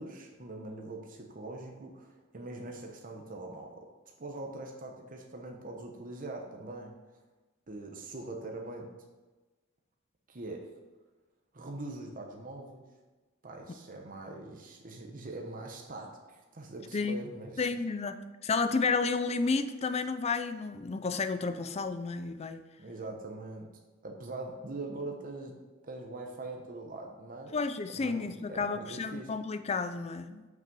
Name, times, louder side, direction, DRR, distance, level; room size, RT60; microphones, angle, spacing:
voice 1, 0.0-3.9 4.2-6.9 7.7-8.9 10.3-10.7 11.5-12.8 13.4-17.7 22.8-23.7 24.0-25.5 25.8-27.6 27.9-29.3, right 2 dB, 40° right, 2 dB, 0.9 m, -42 dB
voice 2, 17.6-18.2 18.4-22.6 27.5-30.5, left 4 dB, 30° left, 10 dB, 0.4 m, -31 dB
5.9 x 5.7 x 5.3 m, 1.2 s
head